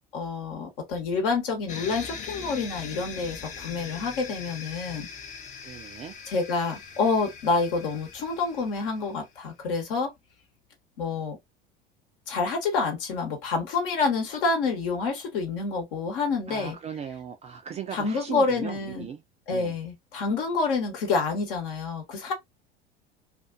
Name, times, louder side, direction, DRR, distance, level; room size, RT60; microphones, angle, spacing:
voice 1, 0.1-5.1 6.3-10.1 11.0-11.4 12.3-16.8 17.9-19.1 19.5-22.3, left 4 dB, 65° left, 1.0 m, -28 dB
sound 1, 1.7-9.3, left 6 dB, 25° left, 0.6 m, -41 dB
voice 2, 5.6-6.1 16.5-19.2 19.5-19.7, right 8 dB, 25° right, 0.3 m, -38 dB
2.3 x 2.3 x 2.4 m
figure-of-eight pair, 70°, 29 cm